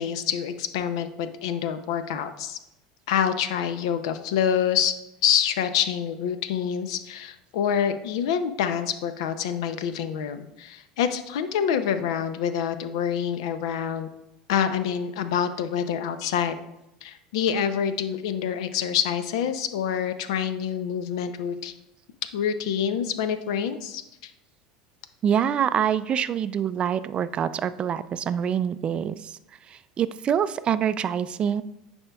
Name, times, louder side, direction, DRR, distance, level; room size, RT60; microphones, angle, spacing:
voice 1, 0.0-2.6 3.1-5.0 5.2-14.1 14.5-16.6 17.0-21.7 22.3-24.3, left 8 dB, 75° left, 11 dB, 0.6 m, -26 dB
voice 2, 25.2-29.4 29.7-31.6, right 8 dB, 35° right, 14 dB, 0.3 m, -25 dB
9.8 x 4.3 x 2.3 m, 0.89 s
hypercardioid pair, 95°, 3 cm